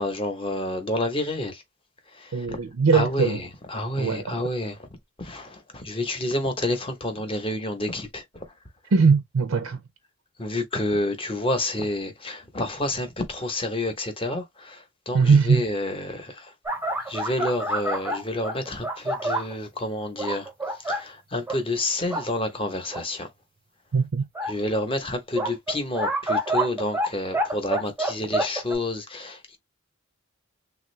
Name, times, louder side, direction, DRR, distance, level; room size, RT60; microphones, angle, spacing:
voice 1, 0.0-1.6 2.1-2.6 2.9-4.8 5.2-8.5 10.4-16.5 17.1-20.5 20.8-23.3 24.5-29.6, left 1 dB, 25° left, 0.8 m, -29 dB
voice 2, 2.3-3.4 4.0-4.4 8.9-9.8 15.1-15.6 23.9-24.2, right 5 dB, 75° right, 0.5 m, -20 dB
sound 1, 16.7-19.5 20.2-21.0 21.5-21.6 22.0-22.3 22.9-23.0 24.4-24.5 25.4-27.1 27.3-28.8, right 1 dB, 10° right, 0.6 m, -27 dB
3.4 x 2.4 x 3.1 m
head